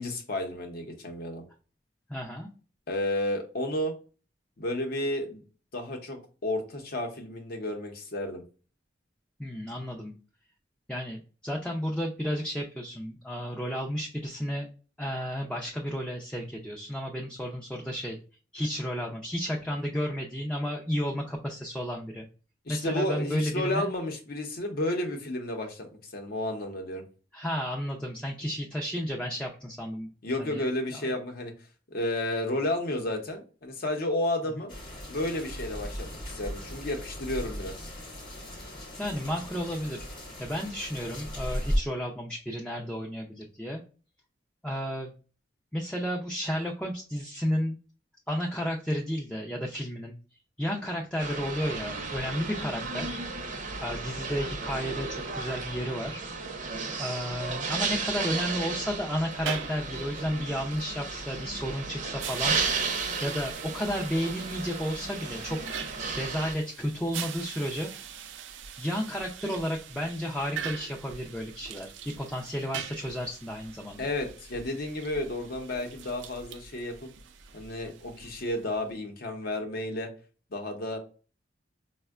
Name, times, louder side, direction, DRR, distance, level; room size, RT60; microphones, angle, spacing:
voice 1, 0.0-1.4 2.9-3.9 4.6-5.4 5.7-8.4 22.7-27.0 30.2-31.5 31.9-34.7 35.1-37.9 74.0-77.1 77.5-80.1 80.5-81.0, left 1 dB, 55° left, 4 dB, 0.7 m, -32 dB
voice 2, 2.1-2.5 9.4-10.1 10.9-14.7 15.0-18.2 18.5-22.3 22.7-23.9 27.3-30.1 30.4-30.6 30.9-31.1 39.0-40.0 40.4-43.8 44.6-45.1 45.7-47.8 48.3-50.2 50.6-53.2 53.8-56.2 57.0-62.6 63.2-67.9 68.8-74.0, equal, 5° left, -1 dB, 0.4 m, -32 dB
sound 1, 34.7-41.8, equal, 25° left, 0.9 m, -36 dB
sound 2, 51.2-66.5, right 4 dB, 45° right, 0.6 m, -34 dB
sound 3, 59.3-78.9, right 7 dB, 90° right, 0.4 m, -43 dB
4.3 x 2.1 x 2.3 m, 0.37 s
head